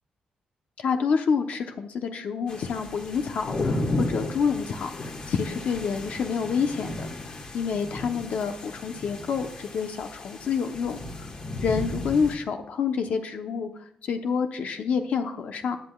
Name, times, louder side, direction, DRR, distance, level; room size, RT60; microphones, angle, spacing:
voice 1, 0.8-7.1 7.5-11.0 11.6-13.7 14.0-15.8, left 6 dB, 60° left, 6 dB, 0.9 m, -28 dB
sound 1, 2.5-12.4, left 2 dB, 35° left, 1.7 m, -34 dB
19.5 x 7.8 x 2.4 m, 0.71 s
cardioid pair, 145°, 3 cm